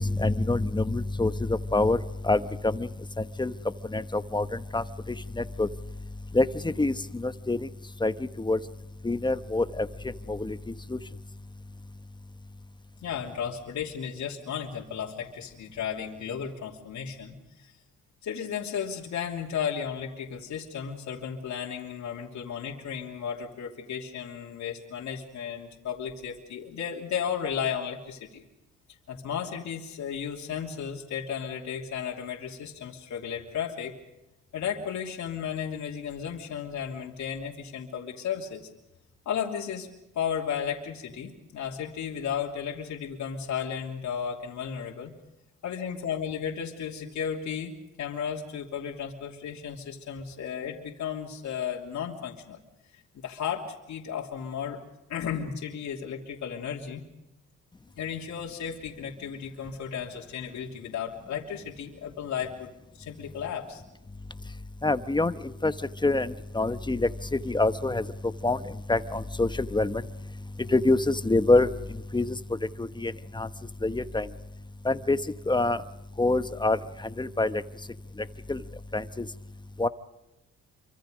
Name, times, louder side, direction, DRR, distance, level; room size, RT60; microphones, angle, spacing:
voice 1, 0.0-2.9 3.2-3.5 3.9-5.7 6.3-7.7 8.0-8.6 9.0-9.9 10.3-11.0 64.8-65.7 66.0-68.0 68.4-70.0 70.7-71.7 72.1-72.4 72.8-73.5 73.8-74.3 74.8-75.2 75.5-75.8 76.2-76.8 77.2-77.6 78.5-78.6 78.9-79.3 79.8-79.9, left 2 dB, 15° left, 11 dB, 1.1 m, -26 dB
voice 2, 13.0-17.8 18.2-28.4 29.1-33.9 34.5-38.7 39.2-39.9 40.1-45.1 45.6-47.7 48.0-52.6 52.9-54.8 55.1-57.0 58.0-63.8, left 8 dB, 70° left, -1 dB, 3.0 m, -34 dB
27.5 x 25.0 x 5.2 m, 0.95 s
cardioid pair, 90°, 30 cm